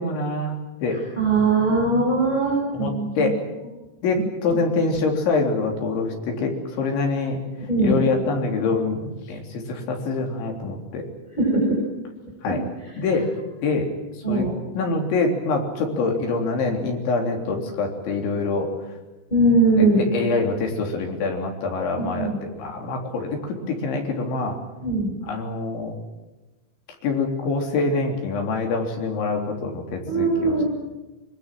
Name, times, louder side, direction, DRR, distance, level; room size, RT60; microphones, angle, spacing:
voice 1, 0.0-1.0 2.7-3.4 4.0-7.4 7.8-11.1 12.4-12.6 13.0-13.3 13.6-13.9 14.3-18.7 19.8-24.6 25.3-26.0 27.0-30.6, left 3 dB, 75° left, 2 dB, 5.9 m, -25 dB
voice 2, 0.9-3.3 7.7-8.0 11.3-11.8 12.4-12.5 12.8-12.9 14.2-14.5 19.3-20.0 22.0-22.4 24.8-25.1 30.1-30.6, right 2 dB, 10° left, -5 dB, 7.2 m, -21 dB
25.5 x 22.0 x 7.7 m, 1.1 s
omnidirectional pair, 5.4 m